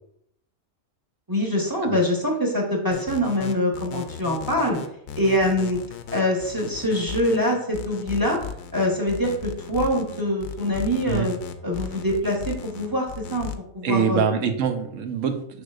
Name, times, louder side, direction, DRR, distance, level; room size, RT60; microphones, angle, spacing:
voice 1, 1.3-4.8 5.2-5.8 6.1-8.4 8.7-11.3 11.6-13.5 13.7-14.2, left 1 dB, 15° right, -1 dB, 1.2 m, -24 dB
sound 1, 2.9-13.6, left 8 dB, 85° left, 1.0 m, -36 dB
voice 2, 13.8-15.6, right 7 dB, 70° right, 7 dB, 1.1 m, -24 dB
6.8 x 6.0 x 2.5 m, 0.70 s
omnidirectional pair, 1.4 m